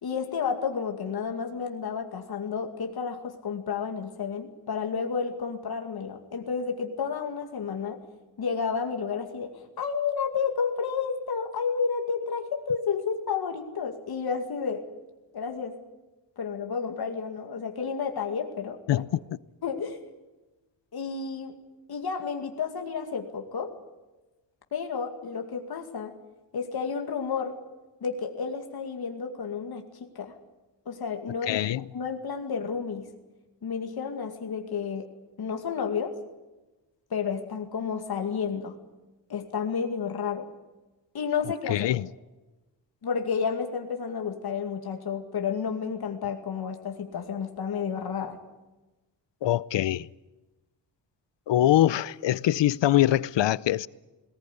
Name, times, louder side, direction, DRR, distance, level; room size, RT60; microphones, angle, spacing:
voice 1, 0.0-8.0 8.4-14.8 15.3-15.8 16.4-19.0 19.6-20.0 20.9-21.5 21.9-23.7 24.7-26.1 26.5-27.6 28.0-30.3 30.9-31.6 31.9-33.1 33.6-35.1 35.4-36.1 37.1-38.7 39.3-40.5 41.1-41.9 43.0-48.4, left 6 dB, 60° left, 2.3 m, -31 dB
voice 2, 31.5-31.8 41.7-42.1 49.4-50.1 51.5-53.9, left 13 dB, 80° left, 0.7 m, -23 dB
20.0 x 19.0 x 9.9 m
wide cardioid pair, 160°, 43 cm